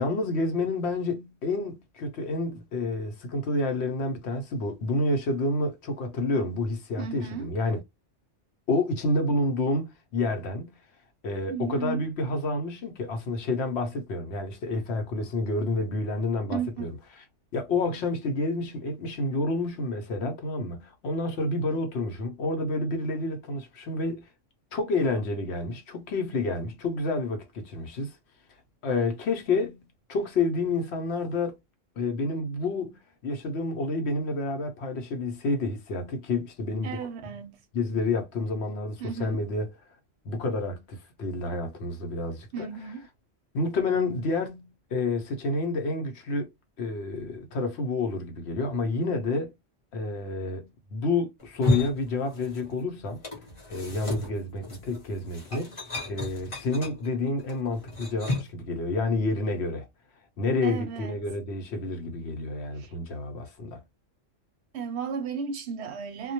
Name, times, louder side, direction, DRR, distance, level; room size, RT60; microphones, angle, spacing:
voice 1, 0.0-7.8 8.7-10.7 11.2-16.9 17.5-24.3 24.7-28.2 28.8-29.8 30.1-31.6 32.0-37.0 37.7-39.7 40.2-42.7 43.5-46.5 46.8-49.5 49.9-53.2 53.7-55.8 56.1-59.9 60.4-63.8, left 2 dB, 65° left, 0.8 m, -29 dB
voice 2, 7.0-7.5 11.5-12.1 16.5-16.9 36.8-37.6 39.0-39.4 42.5-43.0 60.6-61.2 62.7-62.9 64.7-66.3, right 6 dB, 70° right, 0.8 m, -34 dB
sound 1, 51.4-52.8 53.1-58.6, left 2 dB, 30° left, 0.8 m, -32 dB
2.1 x 2.1 x 2.8 m
omnidirectional pair, 1.3 m